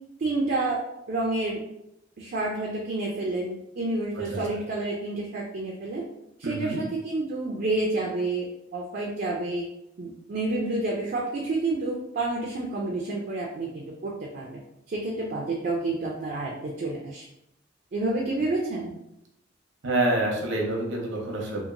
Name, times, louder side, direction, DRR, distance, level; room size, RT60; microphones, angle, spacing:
voice 1, 0.2-0.8 1.1-1.6 2.2-6.0 6.4-9.7 10.0-14.6 14.9-17.2 17.9-18.9, right 2 dB, 50° right, -2 dB, 0.4 m, -29 dB
voice 2, 6.4-6.8 19.8-21.7, right 1 dB, 85° right, -1 dB, 0.8 m, -27 dB
2.9 x 2.4 x 2.5 m, 0.85 s
head